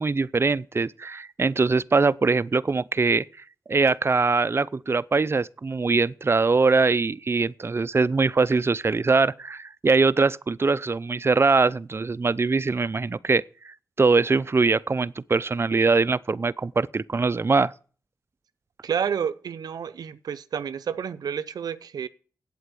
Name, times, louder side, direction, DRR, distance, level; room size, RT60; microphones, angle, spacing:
voice 1, 0.0-3.2 3.7-17.7, right 4 dB, 40° right, 0.5 m, -22 dB
voice 2, 18.8-22.1, right 7 dB, 85° right, 0.6 m, -30 dB
8.5 x 8.0 x 8.3 m
cardioid pair, 50°, 7 cm